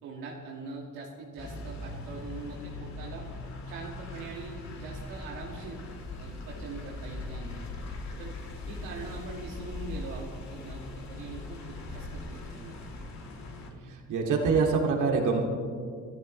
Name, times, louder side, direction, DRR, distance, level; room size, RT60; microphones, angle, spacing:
voice 1, 0.0-3.3 3.7-5.8 6.2-7.6 8.2-8.3 8.7-12.9, right 3 dB, 90° right, -2 dB, 2.1 m, -42 dB
sound 1, 1.4-13.7, left 2 dB, 60° left, 3.0 m, -40 dB
voice 2, 14.1-15.4, right 4 dB, 70° right, 0 dB, 2.6 m, -24 dB
26.5 x 12.5 x 3.3 m, 2.1 s
supercardioid pair, 85°, 32 cm